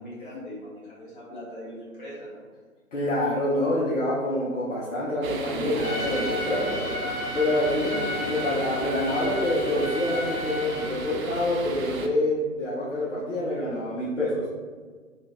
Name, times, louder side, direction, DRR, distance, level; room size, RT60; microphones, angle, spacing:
voice 1, 0.0-2.5, equal, 35° left, -7 dB, 1.2 m, -40 dB
voice 2, 2.9-6.9 7.3-14.4, left 1 dB, 60° left, -8 dB, 0.8 m, -26 dB
sound 1, 5.2-12.1, right 3 dB, 75° right, 0.6 m, -35 dB
Trumpet, 5.7-11.0, left 2 dB, 20° left, 0.4 m, -33 dB
2.8 x 2.4 x 2.8 m, 1.5 s
figure-of-eight pair, 140°, 42 cm